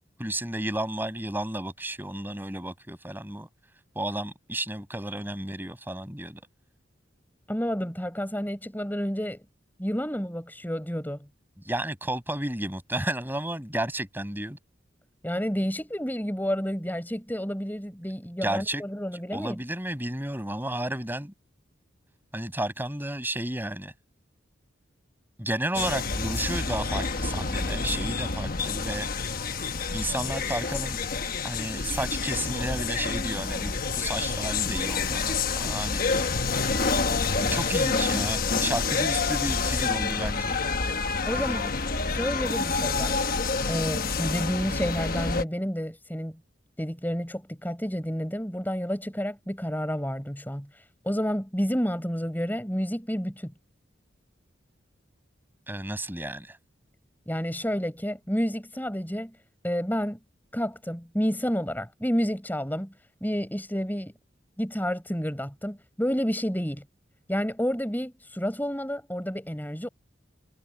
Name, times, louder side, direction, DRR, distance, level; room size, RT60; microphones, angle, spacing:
voice 1, 0.2-3.5 4.0-6.4 11.6-14.6 18.4-18.8 19.3-21.3 22.3-23.9 25.4-29.1 29.9-31.1 31.4-36.0 37.5-40.6 41.3-41.7 55.7-56.6, right 1 dB, 10° right, 7.6 m, -32 dB
voice 2, 7.5-9.4 9.8-11.3 15.2-19.6 41.3-41.6 42.1-43.2 43.7-46.4 46.8-53.5 57.3-59.4 59.6-60.2 60.5-62.9 63.2-64.1 64.6-66.8 67.3-69.9, equal, 10° left, 5.8 m, -30 dB
sound 1, 25.7-45.4, left 4 dB, 45° left, 1.1 m, -28 dB
head